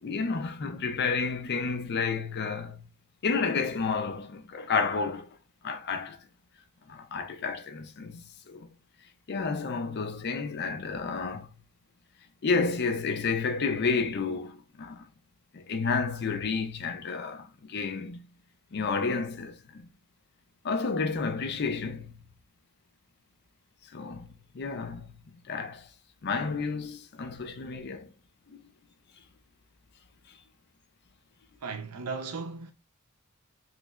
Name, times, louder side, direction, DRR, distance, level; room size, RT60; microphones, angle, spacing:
voice 1, 0.0-2.8 3.2-5.3 5.6-6.2 6.9-8.7 9.3-11.5 12.4-15.1 15.5-18.2 18.7-19.8 20.6-22.1 23.9-25.1 25.5-25.9 26.2-28.1 28.5-28.6, left 4 dB, 50° left, 0.5 m, -31 dB
voice 2, 31.6-32.7, right 4 dB, 90° right, 0.6 m, -36 dB
3.1 x 3.0 x 2.4 m
head